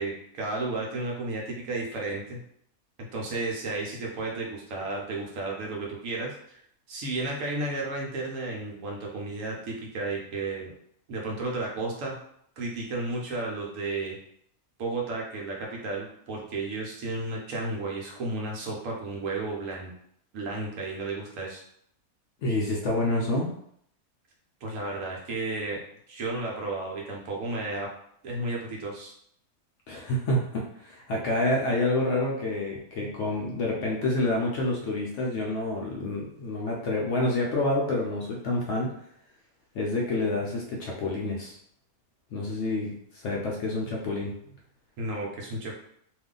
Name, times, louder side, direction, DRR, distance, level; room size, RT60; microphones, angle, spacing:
voice 1, 0.0-2.4 3.1-6.6 6.9-10.7 11.1-12.2 12.6-14.2 14.8-19.9 20.3-21.6 24.6-25.8 26.1-27.9 28.2-29.1 45.0-45.7, right 2 dB, 65° right, -2 dB, 1.0 m, -33 dB
voice 2, 22.4-23.5 29.9-38.9 39.7-41.6 42.3-42.9 43.2-44.3, left 2 dB, 65° left, -2 dB, 0.8 m, -28 dB
2.6 x 2.4 x 3.6 m, 0.69 s
omnidirectional pair, 1.5 m